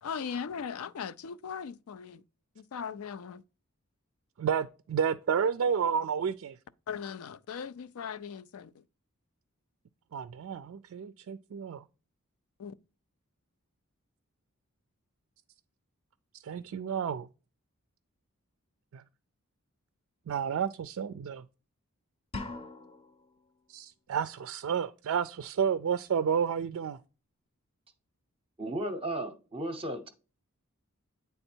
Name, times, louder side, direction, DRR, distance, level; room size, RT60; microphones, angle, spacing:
voice 1, 0.0-2.2 2.6-3.4 6.9-8.7 12.6-12.7, left 6 dB, 80° left, 0.4 m, -39 dB
voice 2, 4.4-6.6 10.1-11.8 16.4-17.3 18.9-19.0 20.3-21.4 23.7-27.0, right 7 dB, 65° right, 0.3 m, -31 dB
sound 1, 22.3-23.3, left 2 dB, 25° left, 0.7 m, -41 dB
voice 3, 28.6-30.1, right 1 dB, 25° right, 0.7 m, -34 dB
9.0 x 3.4 x 4.4 m
head